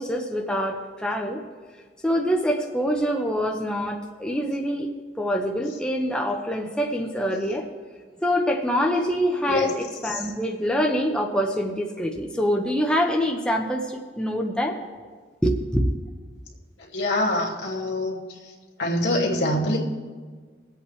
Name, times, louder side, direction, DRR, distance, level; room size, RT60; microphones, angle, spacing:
voice 1, 0.0-1.4 2.0-4.9 5.2-7.7 8.2-14.8 15.4-15.9, equal, 5° left, 0 dB, 0.9 m, -25 dB
voice 2, 16.9-18.2 18.8-19.8, left 1 dB, 85° left, -2 dB, 2.3 m, -24 dB
22.0 x 8.1 x 3.2 m, 1.5 s
head